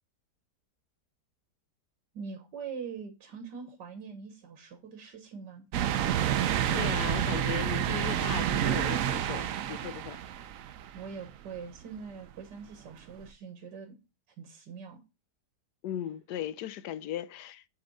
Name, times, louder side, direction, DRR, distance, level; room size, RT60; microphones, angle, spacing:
voice 1, 2.1-5.7 10.9-14.0 14.4-15.0, right 6 dB, 85° right, 1.9 m, -43 dB
sound 1, 5.7-11.3 11.8-11.9 13.2-13.3, right 10 dB, 65° right, 0.8 m, -29 dB
voice 2, 6.3-10.2 15.8-17.7, left 11 dB, 75° left, 1.1 m, -38 dB
11.0 x 3.9 x 4.0 m
omnidirectional pair, 1.8 m